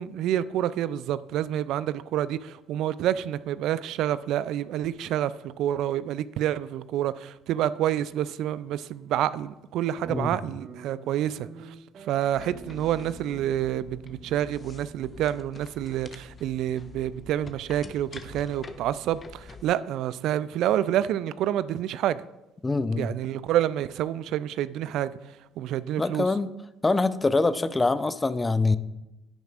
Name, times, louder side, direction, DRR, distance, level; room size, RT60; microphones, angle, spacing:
voice 1, 0.0-22.2 23.0-25.2 25.6-26.3, right 11 dB, 65° right, 0.3 m, -28 dB
Guitar, 10.0-16.7, right 4 dB, 50° right, 2.0 m, -47 dB
sound 1, 12.3-19.8, left 4 dB, 35° left, 0.9 m, -46 dB
voice 2, 22.6-23.1 26.0-26.5 26.8-28.8, left 3 dB, 20° left, 0.5 m, -24 dB
10.0 x 9.3 x 2.5 m
hypercardioid pair, 55°, 0 cm